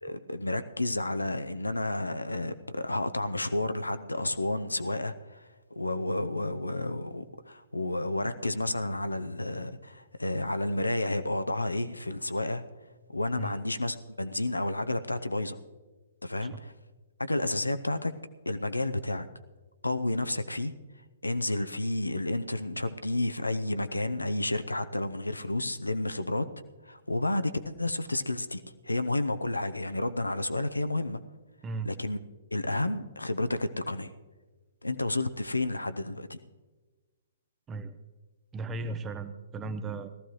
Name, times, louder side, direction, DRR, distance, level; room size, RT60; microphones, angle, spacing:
voice 1, 0.0-12.6 13.1-15.6 16.2-16.7 17.2-18.1 18.5-19.3 19.8-20.7 21.2-26.5 26.8-31.2 31.8-32.2 32.5-34.1 34.8-36.4, left 2 dB, 85° left, 11 dB, 0.6 m, -31 dB
voice 2, 38.5-40.1, right 3 dB, 15° right, 10 dB, 0.7 m, -36 dB
18.5 x 14.0 x 3.1 m, 1.3 s
figure-of-eight pair, 120°, 0 cm